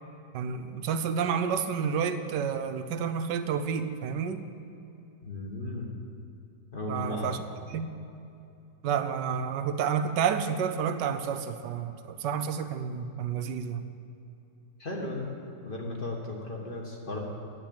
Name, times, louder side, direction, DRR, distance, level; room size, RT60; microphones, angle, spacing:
voice 1, 0.3-4.5 6.9-7.4 7.7-7.9 8.8-13.8, right 7 dB, 85° right, 9 dB, 1.3 m, -30 dB
voice 2, 5.2-5.9 6.7-7.4 14.8-15.3 15.6-17.2, left 2 dB, 30° left, -1 dB, 1.7 m, -35 dB
10.5 x 7.6 x 8.7 m, 2.8 s
omnidirectional pair, 1.8 m